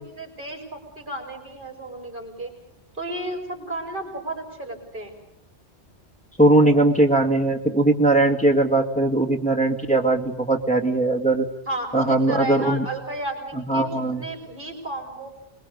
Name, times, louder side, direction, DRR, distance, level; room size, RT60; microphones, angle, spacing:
voice 1, 0.0-2.5 2.9-5.1 11.7-15.3, right 1 dB, 45° right, 3 dB, 5.0 m, -33 dB
voice 2, 6.4-11.5 11.9-12.8 13.7-14.2, right 2 dB, 5° left, 3 dB, 2.2 m, -19 dB
26.5 x 21.5 x 6.7 m, 0.82 s
omnidirectional pair, 1.2 m